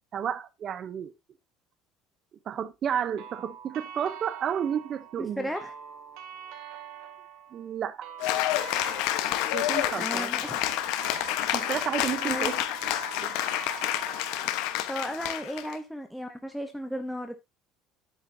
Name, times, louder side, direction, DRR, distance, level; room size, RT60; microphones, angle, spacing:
voice 1, 0.1-1.1 2.5-5.5 7.5-8.1 9.5-10.3 11.5-12.6 13.2-13.3, right 8 dB, 35° right, 0.8 m, -31 dB
sound 1, 3.2-14.6, right 8 dB, 75° right, 2.2 m, -44 dB
voice 2, 5.2-5.7 10.0-10.7 12.2-12.5 14.9-17.3, equal, ahead, 0.9 m, -35 dB
Cheering / Applause, 8.2-15.7, left 13 dB, 75° left, 1.1 m, -29 dB
11.0 x 8.1 x 2.7 m
cardioid pair, 160°, 0 cm